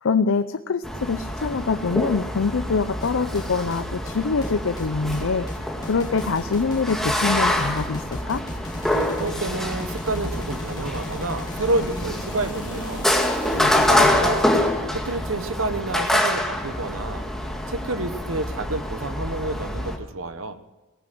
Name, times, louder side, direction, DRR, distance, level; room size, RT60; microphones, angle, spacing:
voice 1, 0.0-8.4 13.5-14.1, left 4 dB, 80° left, 11 dB, 0.6 m, -25 dB
sound 1, 0.8-20.0, left 1 dB, ahead, 1.8 m, -26 dB
sound 2, 3.0-14.3, left 1 dB, 20° left, 3.2 m, -37 dB
voice 2, 9.2-13.1 13.8-14.5 14.9-17.3 17.7-20.6, right 2 dB, 90° right, 10 dB, 1.2 m, -29 dB
18.0 x 9.9 x 7.7 m, 1.2 s
head